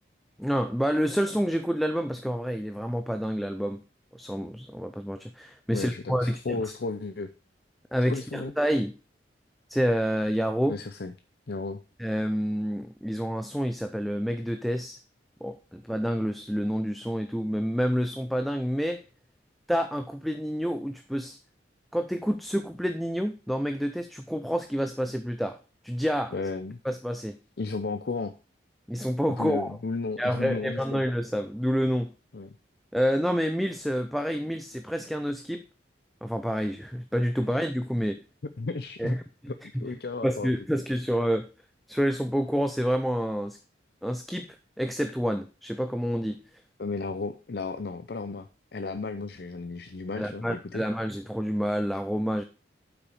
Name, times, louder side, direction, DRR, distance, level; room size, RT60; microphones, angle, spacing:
voice 1, 0.4-3.8 4.1-6.6 7.9-8.9 9.7-10.8 12.0-15.0 15.4-19.0 19.7-21.4 21.9-25.6 25.8-26.3 26.8-27.4 28.9-29.8 30.2-32.1 32.9-35.6 36.2-38.2 39.0-39.2 39.8-39.9 40.2-41.5 41.9-43.6 44.0-46.4 50.2-52.4, equal, ahead, 8 dB, 0.4 m, -28 dB
voice 2, 5.7-7.3 8.1-8.5 10.7-11.1 11.5-11.8 26.3-26.8 27.6-28.3 29.4-31.0 32.3-32.5 38.0-38.1 38.6-39.2 39.8-40.5 46.8-50.8, left 3 dB, 55° left, 10 dB, 0.5 m, -34 dB
8.1 x 6.1 x 4.7 m, 0.33 s
head